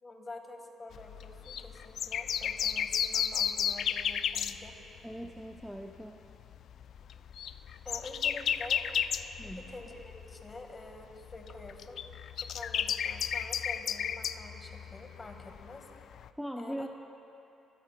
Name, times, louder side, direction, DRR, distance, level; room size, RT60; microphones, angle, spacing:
voice 1, 0.0-4.7 7.8-8.8 9.4-12.0 12.5-15.9 16.6-16.9, left 2 dB, 30° left, 4 dB, 1.5 m, -47 dB
sound 1, 0.9-5.3 5.6-5.8 6.3-10.6 10.9-16.3, left 8 dB, 65° left, 0.3 m, -33 dB
voice 2, 5.0-6.2 9.4-9.7 16.4-16.9, equal, ahead, 2 dB, 0.5 m, -40 dB
23.5 x 13.0 x 2.2 m, 2.8 s
cardioid pair, 90°, 0 cm